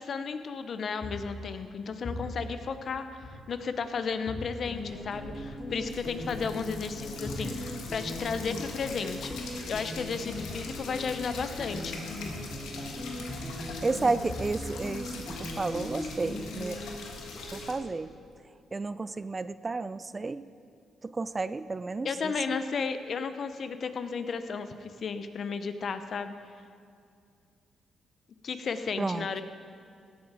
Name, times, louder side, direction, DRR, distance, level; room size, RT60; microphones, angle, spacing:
voice 1, 0.0-12.0 22.0-26.3 28.4-29.4, left 5 dB, 60° left, 10 dB, 0.7 m, -34 dB
sound 1, 1.0-3.8 4.3-8.0 8.3-11.9 12.3-12.8 13.2-15.5, left 1 dB, 40° left, 2.7 m, -43 dB
sound 2, 4.7-17.6, left 1 dB, 20° left, 3.1 m, -40 dB
sound 3, 5.9-17.7, left 4 dB, 85° left, 1.5 m, -43 dB
voice 2, 13.5-15.1 15.4-16.9 17.5-18.2 18.7-20.5 21.0-22.6 29.0-29.4, right 3 dB, 30° right, 15 dB, 0.4 m, -32 dB
16.5 x 7.4 x 4.8 m, 2.3 s
cardioid pair, 70°, 0 cm